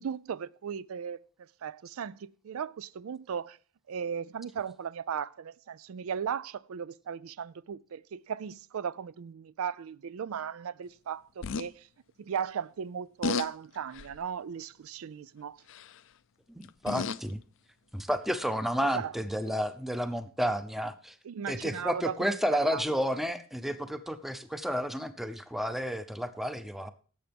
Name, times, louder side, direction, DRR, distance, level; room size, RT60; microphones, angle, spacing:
voice 1, 0.0-3.6 3.9-11.9 12.2-15.6 18.9-19.1 19.5-19.6 21.2-22.4 22.6-23.0, right 7 dB, 75° right, 0.4 m, -37 dB
sound 1, 11.4-11.7 13.2-13.5 13.9-14.3 15.7-16.0 16.6-17.3 18.2-18.3, left 5 dB, 60° left, 0.5 m, -33 dB
voice 2, 16.5-17.4 17.9-21.2 21.5-26.9, equal, ahead, 0.7 m, -31 dB
17.5 x 7.9 x 3.5 m
head